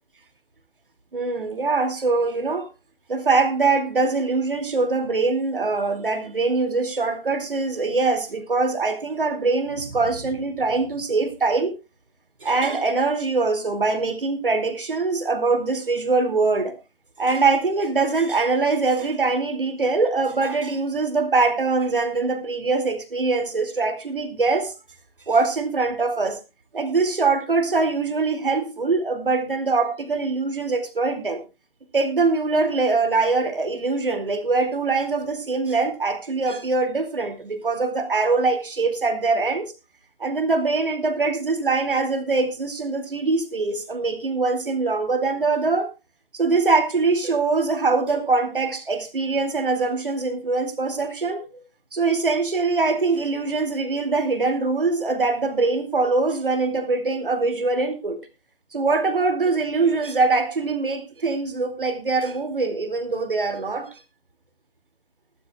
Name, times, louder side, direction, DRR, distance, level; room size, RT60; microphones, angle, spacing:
voice 1, 1.1-2.7 3.1-11.7 12.4-16.7 17.2-24.7 25.3-26.4 26.7-31.4 31.9-39.7 40.2-45.9 46.3-51.5 51.9-58.2 58.7-64.0, right 3 dB, 60° right, 2.6 m, -23 dB
20.0 x 12.0 x 2.4 m
figure-of-eight pair, 145°, 30 cm